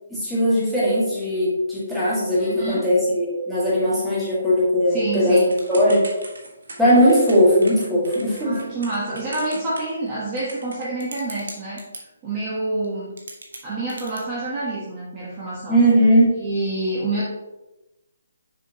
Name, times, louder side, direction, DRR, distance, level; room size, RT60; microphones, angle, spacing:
voice 1, 0.1-5.4 5.7-6.1 6.8-8.6 15.7-16.4, equal, 5° right, -10 dB, 1.9 m, -18 dB
voice 2, 2.4-2.9 4.9-5.5 8.4-11.8 12.2-13.1 13.6-15.8 16.4-17.2, right 2 dB, 20° right, -7 dB, 1.1 m, -27 dB
Typing / Telephone, 5.5-12.0 12.8-12.9 13.2-14.2, right 2 dB, 90° right, 1.4 m, -39 dB
6.7 x 4.9 x 2.9 m, 0.99 s
hypercardioid pair, 165°, 0 cm